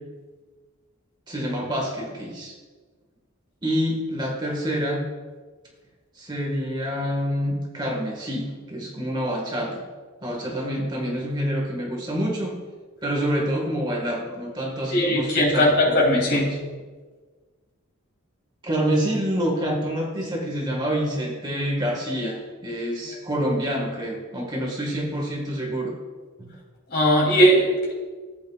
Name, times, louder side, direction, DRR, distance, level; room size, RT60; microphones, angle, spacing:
voice 1, 1.3-2.5 3.6-5.0 6.1-9.8 10.2-12.5 13.0-16.4 18.6-25.9 26.4-26.5, equal, 20° right, -1 dB, 1.4 m, -27 dB
voice 2, 14.9-16.5 26.9-27.9, equal, 45° left, -3 dB, 2.9 m, -19 dB
14.5 x 8.3 x 2.3 m, 1.4 s
head